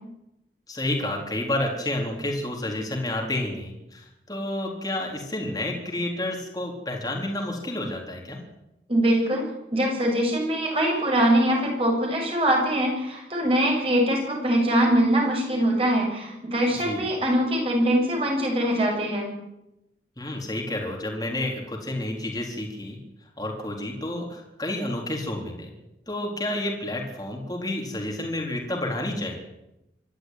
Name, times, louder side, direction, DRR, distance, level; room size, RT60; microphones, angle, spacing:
voice 1, 0.7-8.4 16.7-17.1 20.2-23.0 23.4-25.7 26.1-29.3, left 1 dB, 20° left, 0 dB, 4.1 m, -30 dB
voice 2, 8.9-19.3, right 1 dB, 30° right, 0 dB, 7.1 m, -23 dB
25.5 x 13.0 x 9.5 m, 0.90 s
head